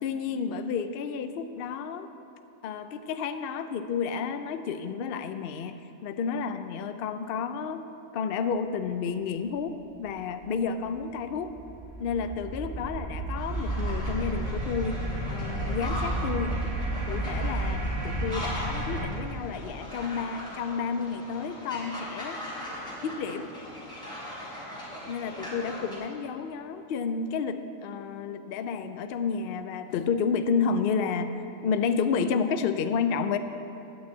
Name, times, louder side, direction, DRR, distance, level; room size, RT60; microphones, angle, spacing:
voice 1, 0.0-2.1 2.6-7.8 8.1-11.6 12.0-15.0 15.3-16.6 17.1-22.4 23.0-23.5 25.1-33.4, left 6 dB, 65° left, 9 dB, 0.6 m, -31 dB
sound 1, 10.7-19.1, right 1 dB, 40° right, 1.6 m, -32 dB
sound 2, 13.3-26.0, left 1 dB, 5° left, 2.8 m, -40 dB
9.6 x 6.0 x 8.3 m, 2.7 s
omnidirectional pair, 1.5 m